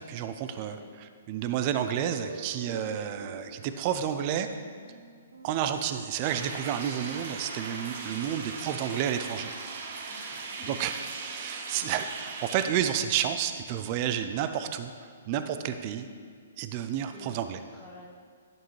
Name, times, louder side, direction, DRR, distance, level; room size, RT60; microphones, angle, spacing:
voice 1, 0.0-4.5 5.4-9.5 10.7-14.9 15.3-16.1 16.6-17.6, right 9 dB, 30° right, 9 dB, 0.4 m, -31 dB
voice 2, 0.5-0.9 8.0-8.6 10.1-10.7 11.7-11.8 17.1-18.1, left 1 dB, 5° right, -7 dB, 1.1 m, -50 dB
sound 1, 2.1-6.7, right 1 dB, 90° right, 0.9 m, -46 dB
sound 2, 6.2-12.7, right 4 dB, 45° right, 0.9 m, -39 dB
10.5 x 7.3 x 3.2 m, 2.1 s
hypercardioid pair, 160°, 0 cm